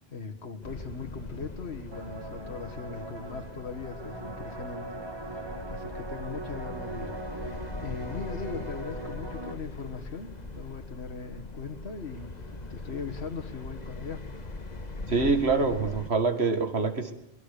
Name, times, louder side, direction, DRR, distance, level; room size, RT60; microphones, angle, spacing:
voice 1, 0.1-5.4 5.7-14.2 15.1-15.3 15.6-16.0 17.0-17.1, left 5 dB, 85° left, 4 dB, 2.0 m, -40 dB
sound 1, 0.6-16.1, left 2 dB, 40° left, 1.7 m, -41 dB
sound 2, 1.9-9.6, right 2 dB, 25° right, 2.0 m, -40 dB
voice 2, 15.1-17.1, right 4 dB, 90° right, 7 dB, 2.1 m, -25 dB
23.5 x 21.5 x 6.8 m, 0.78 s
omnidirectional pair, 1.1 m